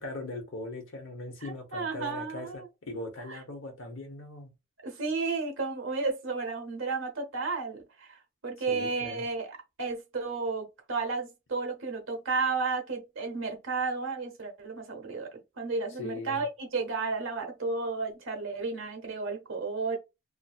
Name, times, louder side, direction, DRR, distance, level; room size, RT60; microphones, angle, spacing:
voice 1, 0.0-4.5 8.7-9.2 16.0-16.4, left 2 dB, 75° left, 1.0 m, -40 dB
voice 2, 1.4-2.7 3.3-3.4 4.8-20.0, right 4 dB, 75° right, 0.9 m, -33 dB
2.7 x 2.6 x 2.3 m
head